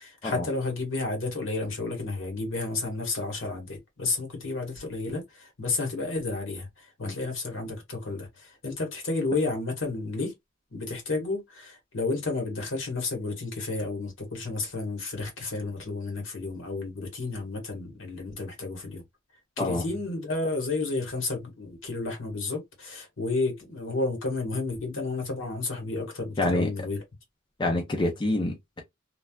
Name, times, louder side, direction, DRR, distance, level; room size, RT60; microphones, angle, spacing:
voice 1, 0.0-10.3 10.7-19.0 19.6-27.0, left 3 dB, 65° left, 1.3 m, -31 dB
voice 2, 26.4-26.7 27.6-28.8, left 2 dB, 25° left, 0.5 m, -27 dB
3.2 x 2.3 x 2.2 m
head